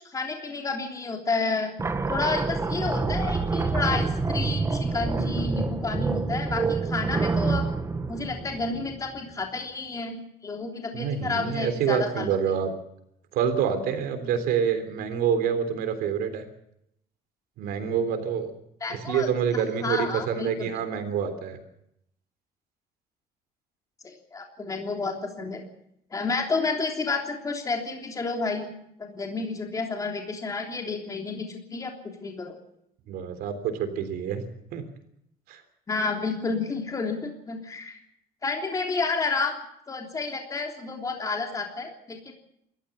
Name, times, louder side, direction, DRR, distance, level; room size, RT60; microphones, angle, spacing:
voice 1, 0.0-1.7 2.1-7.7 8.1-12.4 18.8-20.7 24.0-25.6 26.1-28.7 29.0-32.6 35.9-38.0 38.4-39.5 39.9-42.3, left 4 dB, 20° left, 2 dB, 3.3 m, -30 dB
sound 1, 1.8-9.2, right 4 dB, 20° right, 1.5 m, -27 dB
voice 2, 10.9-12.7 13.3-16.4 17.6-18.5 18.9-21.6 33.1-34.4 34.7-34.8 35.5-35.6, right 7 dB, 75° right, 8 dB, 3.5 m, -27 dB
28.0 x 14.5 x 7.0 m, 0.76 s
cardioid pair, 150°, 16 cm